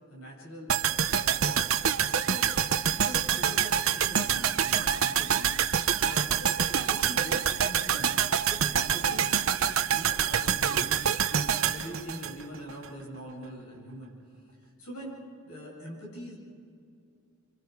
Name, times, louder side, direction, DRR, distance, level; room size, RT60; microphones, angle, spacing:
voice 1, 0.1-1.7 2.2-2.5 2.9-8.1 8.5-10.9 11.3-14.1 14.6-16.4, equal, 90° left, -2 dB, 7.5 m, -43 dB
sound 1, 0.7-12.9 13.1-13.2, right 8 dB, 65° right, 0.8 m, -26 dB
28.5 x 25.0 x 4.8 m, 2.5 s
head